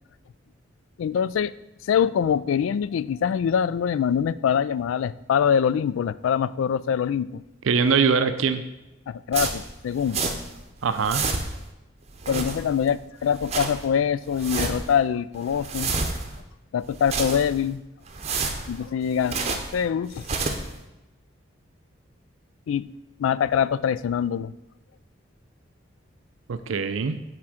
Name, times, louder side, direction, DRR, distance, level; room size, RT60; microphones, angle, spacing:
voice 1, 1.0-1.5 1.9-7.4 9.1-10.2 12.3-16.0 16.7-17.8 18.7-19.4 19.7-20.2 22.7-22.9 23.2-24.5, left 8 dB, 85° left, 17 dB, 0.3 m, -24 dB
voice 2, 7.6-8.6 10.8-11.3 26.5-27.2, right 5 dB, 85° right, 10 dB, 0.5 m, -22 dB
sound 1, 9.3-10.6 10.9-11.7 12.1-12.9 13.2-13.9 14.3-15.0 15.3-16.4 16.9-17.7 18.1-19.8 20.1-20.8, right 4 dB, 35° right, 0.7 m, -30 dB
6.0 x 4.4 x 6.4 m, 0.99 s
head